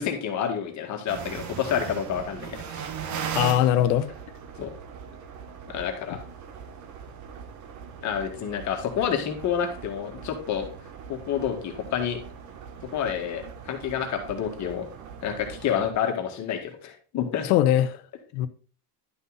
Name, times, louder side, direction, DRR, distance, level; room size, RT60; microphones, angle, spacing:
voice 1, 0.0-2.8 4.6-4.7 5.7-6.2 8.0-10.7 11.1-12.2 12.9-14.9 15.2-17.5, left 8 dB, 35° left, 2.0 m, -29 dB
sound 1, 1.1-15.9, right 7 dB, 40° right, 1.3 m, -39 dB
voice 2, 3.3-4.1 17.4-18.0 18.3-18.5, left 12 dB, 70° left, 1.0 m, -21 dB
11.5 x 5.5 x 4.1 m
supercardioid pair, 135°, 46 cm